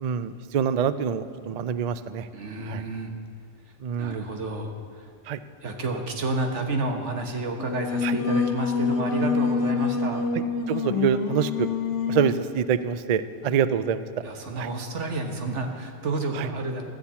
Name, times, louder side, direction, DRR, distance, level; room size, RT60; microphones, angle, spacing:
voice 1, 0.0-2.3 2.6-2.8 3.8-4.3 5.3-5.4 8.0-8.2 10.7-11.7 12.1-14.2 14.6-14.7 16.3-16.5, right 8 dB, 60° right, 13 dB, 0.4 m, -26 dB
voice 2, 2.3-3.1 4.0-5.0 5.6-10.2 14.2-16.8, right 2 dB, 80° right, 3 dB, 1.5 m, -30 dB
Singing, 7.6-12.5, left 5 dB, 85° left, 1.1 m, -26 dB
12.5 x 7.2 x 8.2 m, 2.2 s
omnidirectional pair, 1.2 m